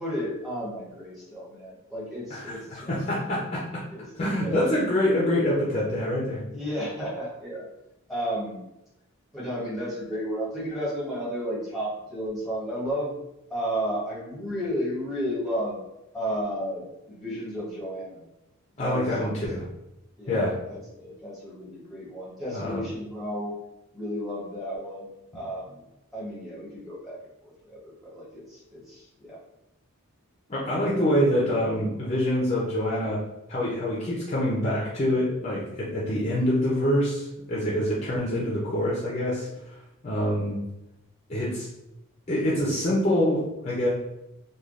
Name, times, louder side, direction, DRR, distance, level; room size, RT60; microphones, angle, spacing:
voice 1, 0.0-3.0 3.9-4.1 4.4-4.6 6.5-7.7 8.1-8.6 9.3-13.2 13.5-15.8 16.1-18.2 18.7-19.0 20.2-23.5 23.9-25.8 26.1-29.4, equal, ahead, -7 dB, 0.9 m, -33 dB
voice 2, 2.3-3.8 4.2-6.4 18.8-19.7 20.3-20.6 22.5-22.8 30.5-33.2 33.5-39.7 40.0-40.6 41.3-41.7 42.3-43.9, left 1 dB, 30° left, -5 dB, 0.5 m, -26 dB
3.2 x 2.3 x 2.4 m, 0.89 s
head